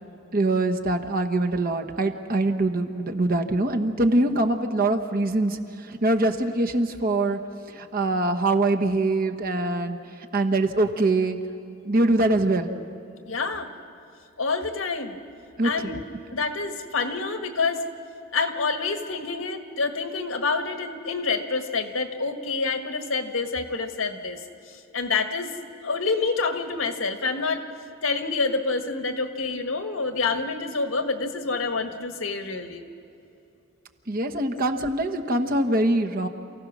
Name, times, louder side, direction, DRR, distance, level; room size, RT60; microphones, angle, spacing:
voice 1, 0.3-5.6 5.9-7.4 7.7-10.0 10.3-11.4 11.8-12.7 15.6-15.9 34.1-36.3, right 2 dB, 50° right, 5 dB, 1.2 m, -23 dB
voice 2, 13.3-13.7 14.4-15.2 15.6-16.0 16.3-17.8 18.3-24.4 24.9-25.5 25.8-27.6 28.0-32.8, left 4 dB, 85° left, 6 dB, 1.5 m, -27 dB
28.5 x 16.0 x 6.2 m, 2.8 s
head